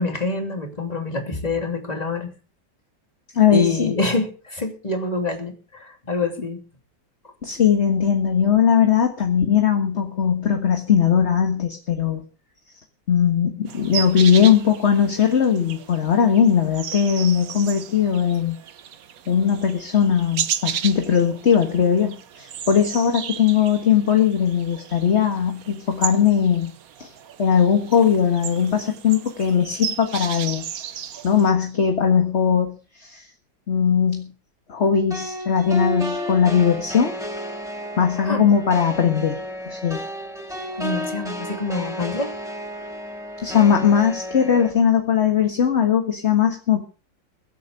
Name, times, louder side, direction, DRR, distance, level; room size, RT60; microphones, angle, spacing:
voice 1, 0.0-2.3 3.5-6.6 38.2-38.5 40.8-42.3, left 3 dB, 20° left, 4 dB, 3.0 m, -26 dB
voice 2, 3.3-3.9 7.4-12.2 13.1-18.6 19.3-26.7 27.0-27.1 27.4-30.6 31.2-33.3 33.7-34.3 34.7-37.1 38.0-39.4 39.7-40.0 43.4-46.8, left 7 dB, 40° left, 5 dB, 1.7 m, -19 dB
sound 1, 13.7-31.5, right 9 dB, 55° right, 1.2 m, -34 dB
sound 2, 35.1-44.7, equal, ahead, 3.9 m, -32 dB
22.5 x 8.4 x 5.2 m, 0.36 s
omnidirectional pair, 2.0 m